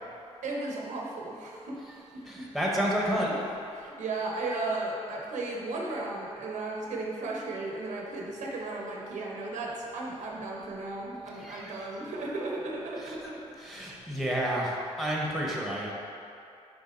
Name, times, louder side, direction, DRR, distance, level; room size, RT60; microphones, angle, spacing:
voice 1, 0.4-1.8 2.1-2.4 3.3-3.4 3.7-13.9, right 2 dB, 85° right, -1 dB, 0.9 m, -35 dB
voice 2, 2.3-3.3 11.4-11.7 13.0-13.1 13.6-15.9, equal, ahead, -3 dB, 0.8 m, -30 dB
6.1 x 3.6 x 4.3 m, 2.6 s
wide cardioid pair, 145°, 12 cm